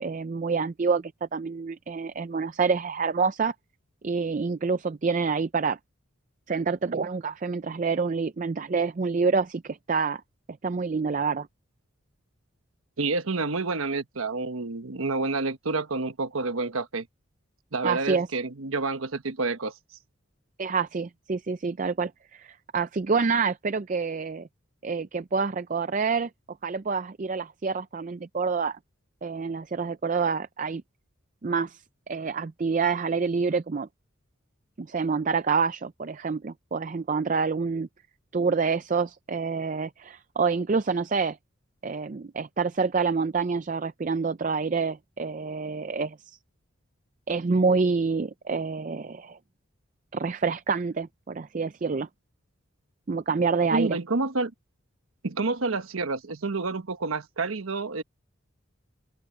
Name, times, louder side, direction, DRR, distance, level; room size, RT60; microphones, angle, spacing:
voice 1, 0.0-3.5 4.0-5.8 6.5-10.2 10.6-11.5 17.8-18.3 20.6-24.5 24.8-26.3 26.6-28.8 29.2-30.8 31.4-33.9 34.8-37.9 38.3-41.4 41.8-46.4 47.3-49.4 50.1-52.1 53.1-54.0, right 5 dB, 40° right, 0.4 m, -27 dB
voice 2, 13.0-17.1 17.7-19.7 53.7-54.5 55.2-58.0, right 3 dB, 85° right, 1.1 m, -29 dB
open air
head